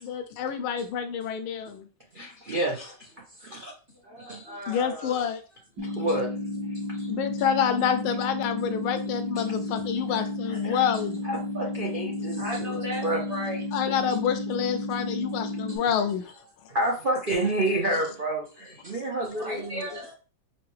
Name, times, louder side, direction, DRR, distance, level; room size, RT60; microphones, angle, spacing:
voice 1, 0.0-1.9 4.7-5.4 7.1-11.2 13.7-16.2, left 8 dB, 80° left, 1.4 m, -28 dB
voice 2, 2.1-3.0 3.4-3.7 4.3-4.4 5.8-6.3 10.1-10.9 11.2-12.4 13.0-13.2 16.7-19.9, right 1 dB, 80° right, 0.4 m, -29 dB
voice 3, 3.3-3.6 3.9-6.2 6.7-7.1 8.7-10.2 10.9-11.0 12.3-13.8 15.3-16.5 18.6-20.1, left 1 dB, 35° right, 1.0 m, -40 dB
sound 1, 5.8-15.8, left 2 dB, 55° right, 1.5 m, -32 dB
5.8 x 2.3 x 3.1 m
omnidirectional pair, 2.3 m